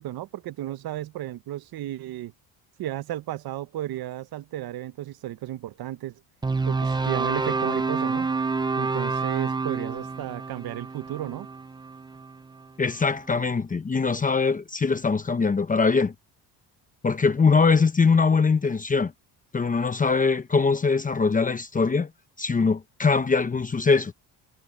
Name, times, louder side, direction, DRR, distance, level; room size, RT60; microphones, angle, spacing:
voice 1, 0.0-2.3 2.8-6.1 6.7-8.3 8.8-11.5, right 14 dB, 60° right, 1.0 m, -33 dB
sound 1, 6.4-12.7, right 4 dB, 10° right, 0.5 m, -28 dB
voice 2, 12.8-16.1 17.0-19.1 19.5-22.1 22.4-24.1, left 4 dB, 20° left, 0.9 m, -22 dB
cardioid pair, 130°, 41 cm